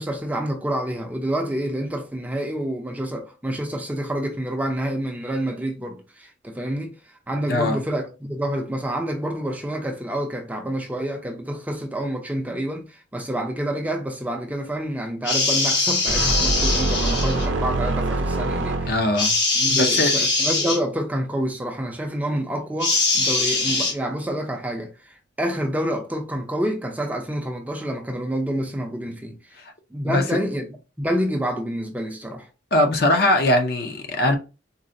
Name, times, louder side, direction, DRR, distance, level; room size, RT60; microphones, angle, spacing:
voice 1, 0.0-19.0 19.5-29.4 29.9-30.7 31.0-32.5, right 1 dB, 10° right, 0.4 m, -28 dB
sound 1, 15.2-17.5 19.2-20.8 22.8-23.9, left 3 dB, 80° left, 1.3 m, -22 dB
sound 2, 16.1-19.3, right 2 dB, 85° right, 0.5 m, -24 dB
voice 2, 18.9-19.4 19.7-20.1 30.1-30.2 32.7-34.4, left 1 dB, 55° left, 0.6 m, -20 dB
3.9 x 2.1 x 2.6 m
head